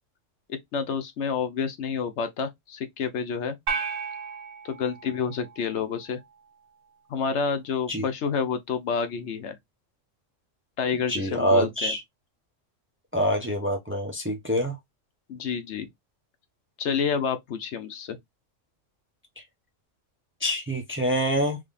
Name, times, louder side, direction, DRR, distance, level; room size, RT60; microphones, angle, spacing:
voice 1, 0.5-3.6 4.6-6.2 7.1-9.6 10.8-11.9 15.3-15.9 16.8-18.2, left 6 dB, 65° left, 1.0 m, -29 dB
sound 1, 3.7-6.1, right 5 dB, 80° right, 1.4 m, -34 dB
voice 2, 11.1-12.0 13.1-14.8 19.4-19.5 20.4-21.6, equal, 15° right, 0.6 m, -25 dB
3.6 x 3.3 x 2.4 m
omnidirectional pair, 1.3 m